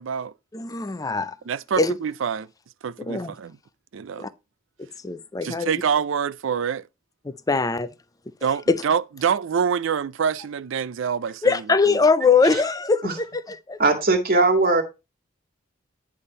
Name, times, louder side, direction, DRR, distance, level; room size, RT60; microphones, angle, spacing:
voice 1, 0.0-0.3 1.5-2.5 2.8-3.6 3.9-4.3 5.4-6.9 8.4-12.0, right 7 dB, 65° right, 0.4 m, -26 dB
voice 2, 0.5-1.3 1.8-1.9 3.0-3.3 4.2-4.3 5.0-5.7 7.3-7.9 8.7-8.8 11.4-13.0 13.7-13.8, left 4 dB, 15° left, 0.4 m, -21 dB
voice 3, 13.8-14.8, right 3 dB, 45° right, 1.9 m, -19 dB
10.0 x 3.5 x 5.4 m
head